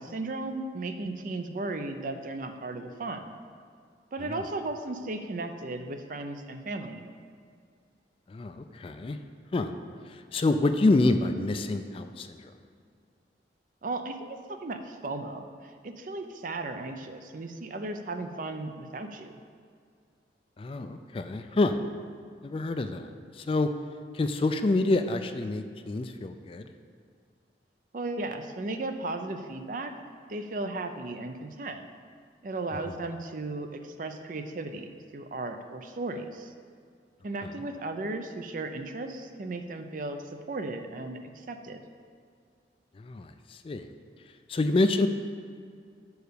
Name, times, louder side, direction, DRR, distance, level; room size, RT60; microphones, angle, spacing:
voice 1, 0.0-3.3 4.1-7.1 13.8-19.3 27.9-29.9 30.3-31.8 32.4-36.5 37.2-41.8, right 2 dB, 50° right, 7 dB, 0.5 m, -35 dB
voice 2, 8.3-9.2 9.5-9.8 10.3-12.4 20.6-21.8 22.4-23.1 23.4-23.7 24.1-26.7 43.0-43.3 43.6-43.9 44.5-45.1, left 2 dB, 30° left, 8 dB, 0.3 m, -27 dB
6.4 x 4.7 x 6.7 m, 2.2 s
head